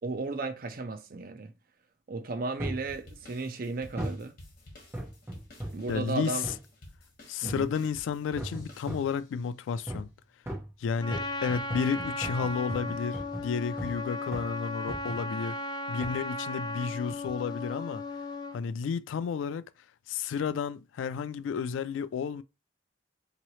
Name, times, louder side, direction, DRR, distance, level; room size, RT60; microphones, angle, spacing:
voice 1, 0.0-1.5 2.1-4.3 5.7-6.5 7.4-7.7, right 3 dB, 50° right, 0.5 m, -34 dB
sound 1, 2.6-2.9 4.0-4.3 4.9-5.9 6.4-6.7 7.5-7.8 8.4-9.2 9.9-10.2 10.5-14.0 14.3-14.6 14.9-15.3 16.0-16.2 17.1-17.4 18.0-18.1, right 1 dB, 10° right, 1.0 m, -39 dB
sound 2, 2.9-9.4, left 1 dB, 50° left, 1.4 m, -52 dB
voice 2, 5.9-6.4 7.3-10.1 10.8-15.6 15.9-18.0 18.5-19.6 20.1-22.4, left 6 dB, 90° left, 0.3 m, -32 dB
Trumpet, 11.0-18.6, left 2 dB, 25° left, 0.4 m, -36 dB
3.8 x 2.9 x 3.1 m
head